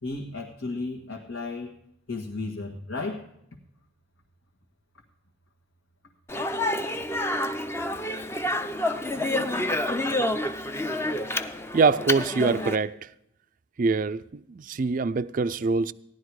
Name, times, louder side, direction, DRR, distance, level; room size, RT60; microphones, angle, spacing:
voice 1, 0.0-1.7 2.1-3.2, left 3 dB, 75° left, 1.7 m, -34 dB
Speech, 6.3-12.8, left 1 dB, 10° left, 0.6 m, -28 dB
voice 2, 11.7-12.9 13.8-15.9, right 4 dB, 40° right, 0.4 m, -24 dB
16.5 x 11.5 x 4.8 m
head